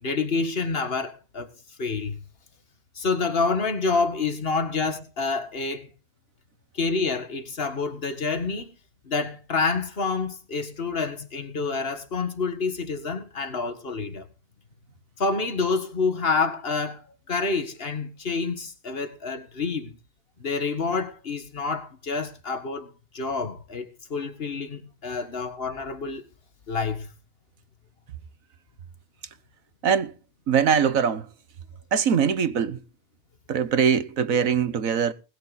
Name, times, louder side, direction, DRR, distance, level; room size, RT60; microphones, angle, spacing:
voice 1, 0.0-1.5 1.8-2.2 3.0-5.9 6.7-8.8 9.1-14.2 15.2-20.0 20.4-23.9 24.1-26.2 26.7-27.1, left 4 dB, 40° left, 2.0 m, -28 dB
voice 2, 30.5-31.3 31.9-32.8 33.5-35.1, right 7 dB, 65° right, 1.5 m, -22 dB
20.5 x 9.8 x 4.1 m
omnidirectional pair, 1.5 m